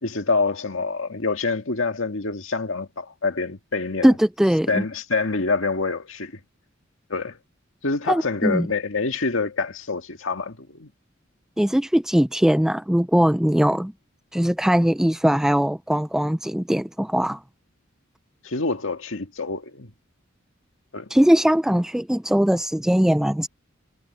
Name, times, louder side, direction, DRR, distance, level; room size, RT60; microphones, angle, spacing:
voice 1, 0.0-4.1 4.7-6.4 7.1-7.4 7.8-10.9 18.4-19.9 20.9-21.1, left 3 dB, 75° left, 1.9 m, -26 dB
voice 2, 4.0-4.8 8.1-8.7 11.6-13.9 14.3-17.4 21.1-23.5, equal, 5° right, 0.3 m, -20 dB
head